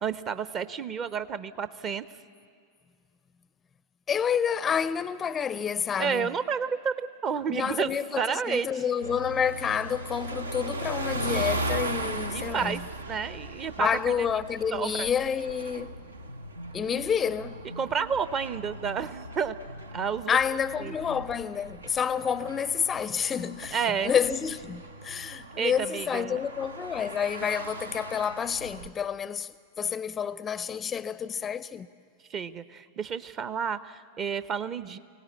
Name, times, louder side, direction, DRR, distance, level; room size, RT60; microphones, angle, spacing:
voice 1, 0.0-2.0 6.0-8.7 12.3-12.8 13.1-13.9 14.7-15.1 17.8-19.5 19.9-20.4 20.8-20.9 23.7-24.1 25.6-26.4 32.3-35.0, right 6 dB, 30° right, 0.8 m, -30 dB
voice 2, 4.1-6.3 7.5-12.8 13.8-15.9 16.7-17.6 20.3-31.9, left 7 dB, 20° left, 0.5 m, -29 dB
sound 1, 9.0-28.9, right 2 dB, 75° right, 0.8 m, -38 dB
sound 2, 15.7-21.4, equal, 85° left, 0.6 m, -45 dB
24.5 x 17.5 x 8.4 m
figure-of-eight pair, 90°, 0 cm